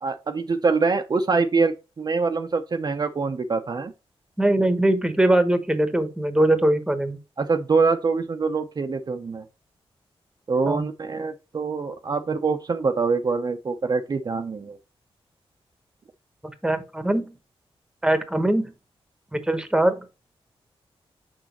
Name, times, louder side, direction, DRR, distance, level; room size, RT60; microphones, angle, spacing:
voice 1, 0.0-3.9 7.4-9.4 10.5-14.8, right 4 dB, 40° right, 0.7 m, -24 dB
voice 2, 4.4-7.2 10.7-10.8 16.6-17.3 18.0-18.7 19.3-20.0, right 1 dB, 5° right, 1.1 m, -21 dB
6.2 x 6.2 x 2.9 m
wide cardioid pair, 110°, 10 cm